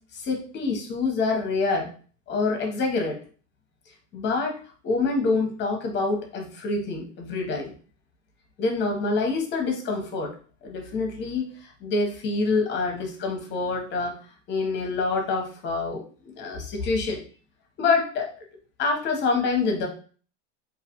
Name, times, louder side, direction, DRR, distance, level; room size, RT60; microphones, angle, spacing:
voice 1, 0.1-1.9 2.3-3.2 4.1-4.5 4.8-7.7 8.6-10.3 10.6-14.2 14.5-16.0 16.3-17.2 17.8-18.3 18.8-19.9, left 3 dB, 30° left, 3 dB, 0.8 m, -26 dB
2.5 x 2.3 x 2.8 m, 0.41 s
supercardioid pair, 130°, 34 cm